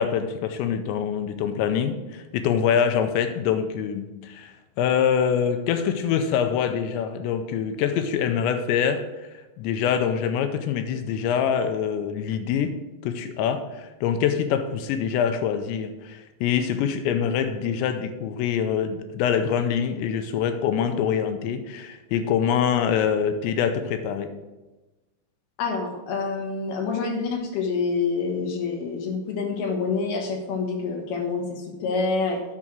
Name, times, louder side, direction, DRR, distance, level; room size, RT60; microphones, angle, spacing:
voice 1, 0.0-9.3 9.6-12.8 13.0-24.3, left 8 dB, 85° left, 8 dB, 2.8 m, -25 dB
voice 2, 25.6-32.4, left 4 dB, 70° left, 2 dB, 2.9 m, -27 dB
9.8 x 5.2 x 6.1 m, 1.1 s
omnidirectional pair, 5.3 m